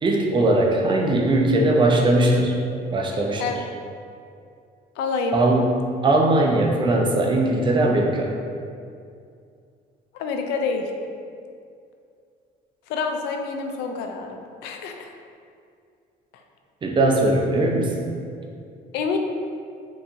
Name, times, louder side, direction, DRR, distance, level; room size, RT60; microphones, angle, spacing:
voice 1, 0.0-3.4 5.3-5.7 6.0-8.3 16.8-18.0, right 2 dB, 30° right, 0 dB, 0.5 m, -20 dB
voice 2, 5.0-5.4 10.1-10.9 12.9-15.1 18.9-19.2, left 4 dB, 90° left, 4 dB, 0.4 m, -27 dB
4.5 x 2.6 x 2.8 m, 2.4 s
cardioid pair, 110°, 17 cm